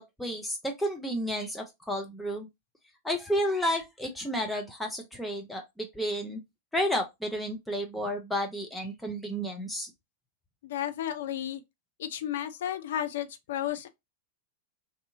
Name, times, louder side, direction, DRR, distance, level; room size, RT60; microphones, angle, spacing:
voice 1, 0.0-2.5 3.0-6.4 6.7-9.9, equal, 5° left, 0.6 m, -31 dB
voice 2, 10.6-11.6 12.0-13.9, left 11 dB, 60° left, 0.4 m, -33 dB
2.7 x 2.6 x 2.5 m
figure-of-eight pair, 90°, 0 cm